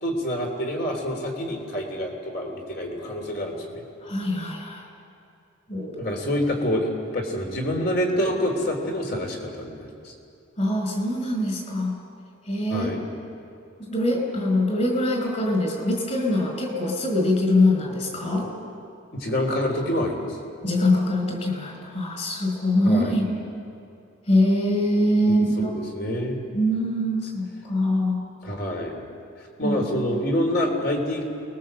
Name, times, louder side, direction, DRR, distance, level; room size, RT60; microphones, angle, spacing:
voice 1, 0.0-3.8 6.0-10.1 12.7-13.0 18.4-18.7 19.1-20.3 22.8-23.1 25.3-25.4 25.6-26.5 28.4-29.0 29.6-31.2, left 1 dB, 50° left, 2 dB, 3.5 m, -27 dB
voice 2, 4.0-4.8 5.7-6.1 10.6-12.0 12.4-12.9 13.8-18.5 20.6-23.3 24.3-25.7 26.5-28.2 29.6-29.8, left 1 dB, 35° left, 3 dB, 5.1 m, -23 dB
28.0 x 21.0 x 7.8 m, 2.6 s
head